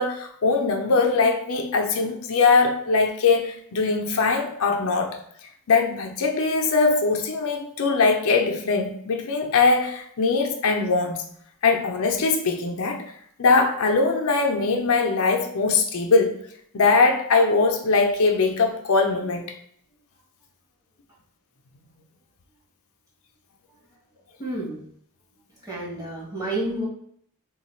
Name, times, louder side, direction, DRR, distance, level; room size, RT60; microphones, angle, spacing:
voice 1, 0.0-5.2 5.7-11.3 11.6-13.1 13.4-16.3 16.7-19.6, left 4 dB, 65° left, 3 dB, 0.5 m, -21 dB
voice 2, 24.4-24.8 25.6-26.9, right 1 dB, 15° right, -5 dB, 1.4 m, -30 dB
3.1 x 2.3 x 4.2 m, 0.65 s
head